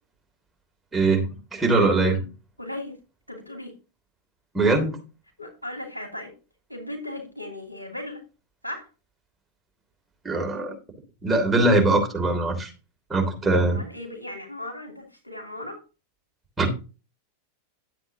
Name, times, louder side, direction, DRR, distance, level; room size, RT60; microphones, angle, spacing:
voice 1, 0.9-1.2 1.5-2.2 4.5-5.0 10.2-10.7 11.2-12.7 13.1-13.8 16.6-16.7, right 2 dB, 10° right, 2 dB, 3.1 m, -21 dB
voice 2, 2.6-3.0 3.3-3.7 5.4-6.3 6.7-8.2 8.6-8.9 13.4-15.8, left 1 dB, 90° left, 3 dB, 2.9 m, -37 dB
11.0 x 7.9 x 2.9 m, 0.31 s
figure-of-eight pair, 90°, 0 cm